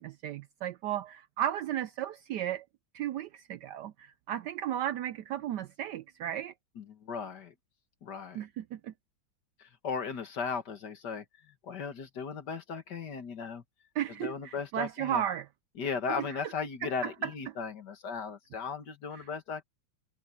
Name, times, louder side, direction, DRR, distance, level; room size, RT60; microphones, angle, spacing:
voice 1, 0.0-2.6 2.9-6.5 8.3-8.9 14.0-15.5 16.1-16.2 16.8-17.1 19.2-19.3, right 11 dB, 75° right, 1.0 m, -34 dB
voice 2, 6.8-7.5 8.0-8.4 9.6-13.6 14.2-15.2 15.8-19.6, left 5 dB, 55° left, 2.2 m, -37 dB
omnidirectional pair, 2.2 m